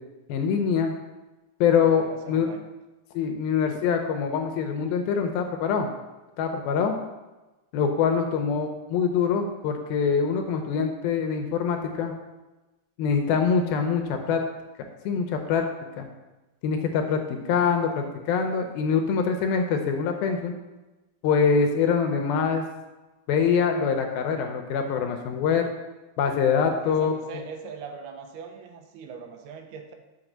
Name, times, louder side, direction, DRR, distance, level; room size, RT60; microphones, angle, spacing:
voice 1, 0.3-0.9 1.6-2.5 3.1-5.9 6.4-6.9 7.7-12.1 13.0-14.4 15.1-15.6 16.0-16.1 16.6-20.6 21.2-22.7 23.3-25.7 26.2-27.1, left 6 dB, 80° left, 5 dB, 2.3 m, -24 dB
voice 2, 1.8-2.7 26.8-29.9, right 6 dB, 85° right, 5 dB, 2.7 m, -40 dB
6.0 x 5.9 x 6.5 m, 1.1 s
omnidirectional pair, 4.6 m